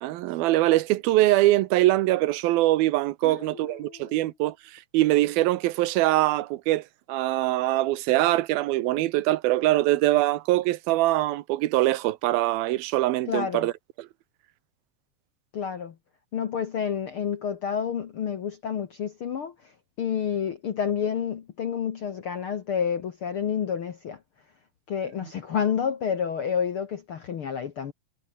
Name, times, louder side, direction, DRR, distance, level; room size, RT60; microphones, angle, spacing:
voice 1, 0.0-13.7, right 16 dB, 85° right, 2.7 m, -23 dB
voice 2, 3.2-4.2 13.3-13.7 15.5-15.9 16.3-19.5 20.0-24.2 24.9-27.9, left 7 dB, 60° left, 1.4 m, -29 dB
omnidirectional pair, 4.2 m